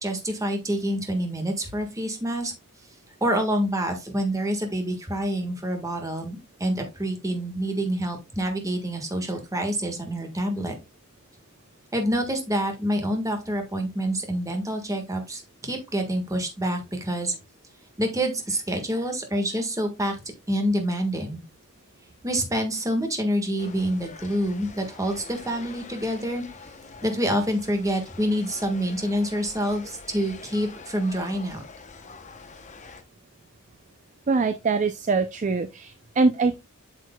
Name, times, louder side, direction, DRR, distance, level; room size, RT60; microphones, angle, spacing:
voice 1, 0.0-2.5 3.2-10.7 11.9-17.4 18.0-20.2 20.5-21.4 22.2-26.5 27.0-31.6, equal, 15° right, 1.5 m, -27 dB
sound 1, 23.6-33.0, left 4 dB, 35° left, 0.8 m, -45 dB
voice 2, 34.3-36.6, right 4 dB, 35° right, 0.4 m, -23 dB
8.1 x 6.5 x 2.2 m
head